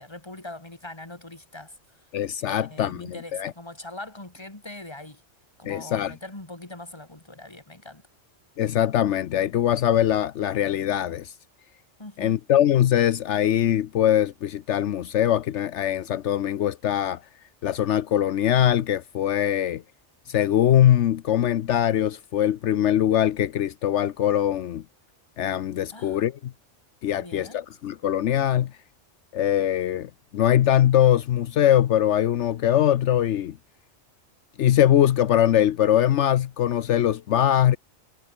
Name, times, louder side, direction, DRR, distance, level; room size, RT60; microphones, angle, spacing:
voice 1, 0.0-1.8 2.5-5.2 5.6-8.0 12.0-12.4 25.9-26.2 27.2-27.6, left 2 dB, 20° left, 2.7 m, -41 dB
voice 2, 2.1-3.5 5.6-6.1 8.6-11.3 12.2-17.2 17.6-19.8 20.3-24.8 25.4-26.5 27.0-28.7 29.3-33.6 34.6-37.8, left 11 dB, 75° left, 1.0 m, -22 dB
omnidirectional pair, 1.2 m